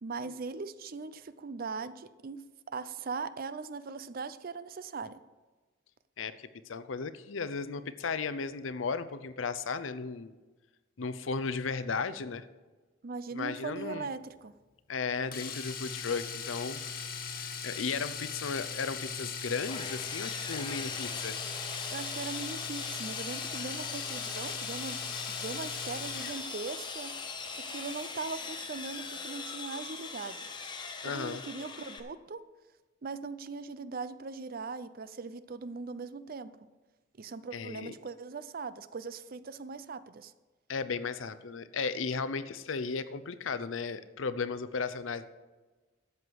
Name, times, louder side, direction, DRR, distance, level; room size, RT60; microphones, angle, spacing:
voice 1, 0.0-5.2 13.0-14.5 21.9-25.0 25.3-27.2 27.7-30.4 31.0-32.4 33.0-36.6 37.2-40.3, right 4 dB, 45° right, 14 dB, 0.5 m, -40 dB
voice 2, 6.7-10.3 11.0-12.4 13.3-14.1 14.9-16.8 17.3-21.4 31.0-31.4 37.5-37.9 40.7-45.2, left 5 dB, 75° left, 13 dB, 0.6 m, -35 dB
Domestic sounds home sounds, 15.3-26.5 28.7-28.8 29.1-29.2, left 6 dB, 45° left, 1.4 m, -39 dB
Sawing, 19.7-32.0, left 4 dB, 25° left, 0.9 m, -40 dB
13.0 x 8.0 x 4.7 m, 1.3 s
head